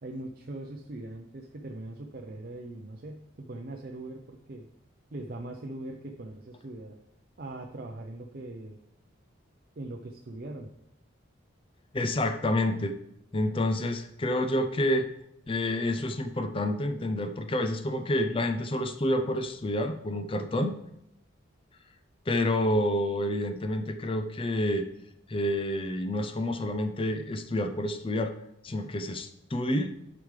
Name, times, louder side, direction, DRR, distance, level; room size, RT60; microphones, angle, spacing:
voice 1, 0.0-4.7 5.1-7.0 7.4-8.8 9.8-10.7, right 2 dB, 50° right, 3 dB, 0.5 m, -41 dB
voice 2, 11.9-13.0 13.3-15.1 15.5-20.7 22.3-24.9 25.3-28.3 28.6-29.9, left 1 dB, 25° left, 8 dB, 0.5 m, -28 dB
11.5 x 5.0 x 3.2 m, 0.81 s
head